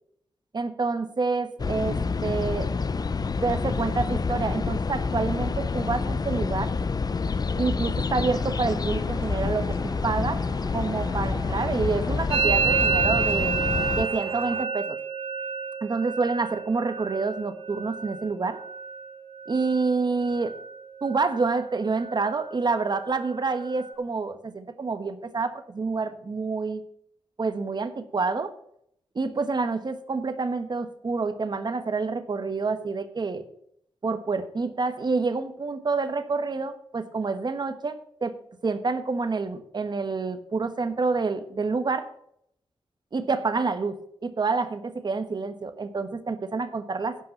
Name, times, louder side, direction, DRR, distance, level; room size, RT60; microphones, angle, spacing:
voice 1, 0.5-2.7 3.4-6.7 7.6-10.4 10.7-13.6 14.0-15.0 15.8-18.6 19.5-20.5 21.0-26.8 27.4-28.5 29.1-33.4 34.0-38.3 38.6-42.1 43.1-43.9 44.2-47.2, right 4 dB, 50° right, 10 dB, 1.2 m, -28 dB
sound 1, 1.6-14.0, left 4 dB, 45° left, 0.6 m, -28 dB
sound 2, 8.3-14.7, right 2 dB, 25° right, 1.0 m, -44 dB
Musical instrument, 12.3-20.0 20.2-20.8 21.0-21.6 21.9-23.9, right 6 dB, 80° right, 1.1 m, -30 dB
11.0 x 5.6 x 7.9 m, 0.70 s
cardioid pair, 55°, 10 cm